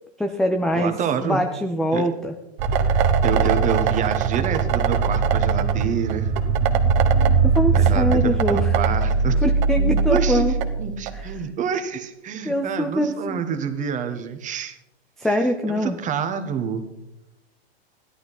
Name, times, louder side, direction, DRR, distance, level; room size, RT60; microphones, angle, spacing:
voice 1, 0.2-0.9 1.2-2.3 7.4-8.8 9.4-10.5 11.1-11.3 12.4-13.4 15.2-16.0, equal, ahead, 5 dB, 0.4 m, -23 dB
voice 2, 0.7-1.4 1.9-2.0 3.2-6.3 7.7-9.4 9.8-10.4 10.8-14.8 15.8-16.8, right 7 dB, 25° right, 8 dB, 1.3 m, -27 dB
sound 1, 2.6-11.2, right 5 dB, 45° right, 1.3 m, -20 dB
14.0 x 11.5 x 4.1 m, 0.90 s
hypercardioid pair, 130°, 32 cm